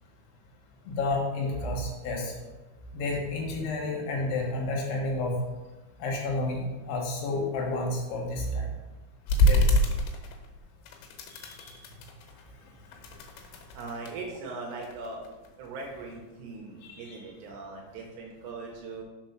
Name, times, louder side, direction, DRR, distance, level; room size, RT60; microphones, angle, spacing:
voice 1, 0.9-2.3 2.9-5.3 6.0-8.7 9.4-9.6 11.3-11.7 16.8-17.3, left 2 dB, 70° left, -1 dB, 3.1 m, -31 dB
sound 1, 9.3-10.6 10.9-12.5 12.9-14.2 14.7-15.9, equal, 90° left, 3.4 m, -26 dB
voice 2, 13.7-15.2 15.6-19.0, right 3 dB, 80° right, 0 dB, 2.8 m, -40 dB
6.4 x 4.3 x 5.8 m, 1.1 s
omnidirectional pair, 5.3 m